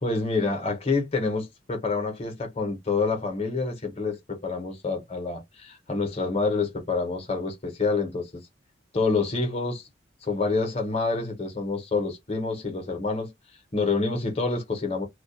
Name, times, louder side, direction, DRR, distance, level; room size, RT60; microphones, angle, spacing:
voice 1, 0.0-8.4 8.9-9.8 10.2-13.3 13.7-15.0, left 3 dB, 30° left, 0.8 m, -27 dB
2.2 x 2.1 x 2.7 m
head